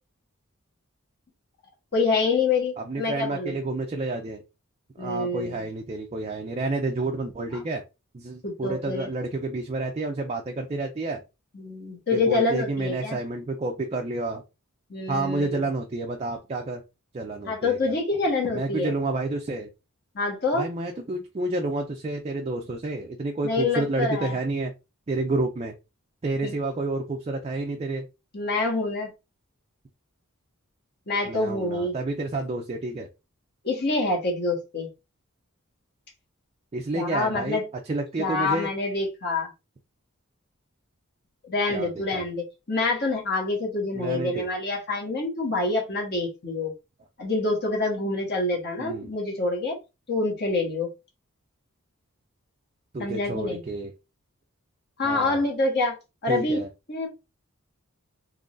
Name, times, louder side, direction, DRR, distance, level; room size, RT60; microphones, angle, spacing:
voice 1, 1.9-3.6 5.0-5.6 8.4-9.1 11.5-13.2 14.9-15.6 17.4-18.9 20.1-20.7 23.4-24.3 26.4-26.5 28.3-29.1 31.1-31.9 33.6-34.9 36.9-37.6 38.2-39.5 41.4-46.7 47.2-49.8 50.1-50.9 53.0-53.6 55.0-56.0 56.2-56.6 56.9-57.1, left 3 dB, 50° left, 1.4 m, -26 dB
voice 2, 2.8-4.4 5.0-7.8 8.1-11.2 12.1-14.4 15.1-16.8 17.1-17.9 18.5-19.7 20.5-24.7 25.1-25.8 26.2-28.1 31.2-33.1 36.7-37.6 37.9-38.7 41.7-42.2 43.9-44.5 48.8-49.1 52.9-53.9 55.0-55.4 56.3-56.7, right 2 dB, 30° right, 0.4 m, -29 dB
3.7 x 3.1 x 2.5 m
head